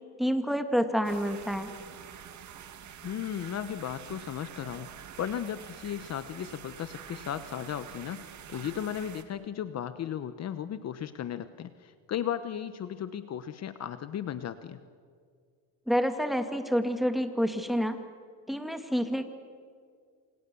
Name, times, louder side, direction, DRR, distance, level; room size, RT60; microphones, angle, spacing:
voice 1, 0.2-1.7 15.9-18.0 18.5-19.3, equal, ahead, 7 dB, 2.2 m, -28 dB
sound 1, 1.0-9.2, right 9 dB, 45° right, 2.5 m, -47 dB
voice 2, 3.0-4.9 5.2-14.8, left 9 dB, 40° left, 12 dB, 1.1 m, -35 dB
28.0 x 26.5 x 7.1 m, 2.1 s
cardioid pair, 115°, 39 cm